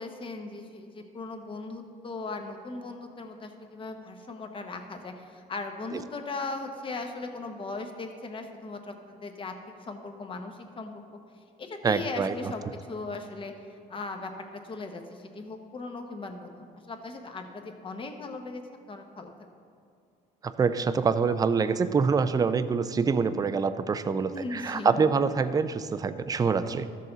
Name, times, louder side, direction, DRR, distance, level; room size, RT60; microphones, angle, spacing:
voice 1, 0.0-11.0 11.6-19.3 24.3-25.0, left 3 dB, 30° left, 5 dB, 1.0 m, -38 dB
voice 2, 11.8-12.5 20.4-26.9, right 5 dB, 20° right, 12 dB, 0.4 m, -25 dB
13.5 x 6.6 x 3.9 m, 2.3 s
cardioid pair, 110°, 17 cm